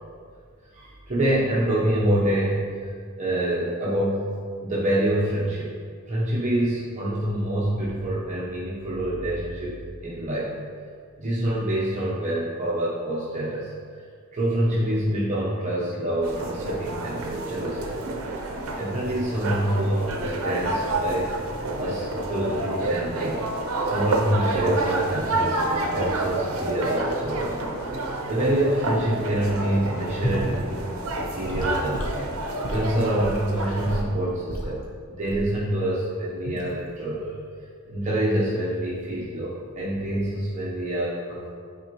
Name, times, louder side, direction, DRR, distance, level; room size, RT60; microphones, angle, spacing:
voice 1, 0.7-2.9 3.2-4.3 4.6-5.7 6.1-9.8 10.0-10.5 11.2-13.7 14.3-18.1 18.8-21.3 21.8-23.4 23.8-27.5 27.9-28.0 28.3-30.8 31.1-32.1 32.7-37.4 37.9-41.5, right 1 dB, 35° right, -7 dB, 0.8 m, -26 dB
sound 1, 16.2-34.0, right 2 dB, 65° right, 0.7 m, -29 dB
Gurgling / Sink (filling or washing) / Liquid, 30.2-30.5 31.4-34.1 34.5-34.7 35.2-35.5 36.4-36.7, equal, 65° left, 1.0 m, -31 dB
8.7 x 4.1 x 3.0 m, 2.1 s
head